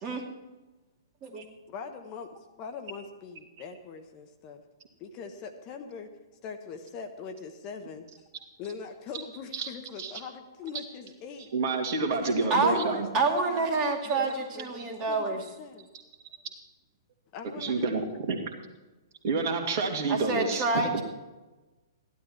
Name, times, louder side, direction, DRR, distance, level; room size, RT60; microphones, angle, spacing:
voice 1, 1.7-2.3 2.6-4.6 5.0-6.1 6.4-8.1 8.6-11.5 12.1-13.7 14.0-15.9 17.3-17.9, left 5 dB, 30° left, 6 dB, 1.2 m, -41 dB
voice 2, 11.5-13.1 17.6-18.4 19.2-20.8, right 4 dB, 45° right, 3 dB, 2.1 m, -28 dB
voice 3, 12.5-15.4 20.1-21.0, right 3 dB, 30° right, 2 dB, 2.3 m, -28 dB
15.5 x 11.5 x 4.6 m, 1.1 s
figure-of-eight pair, 115°, 2 cm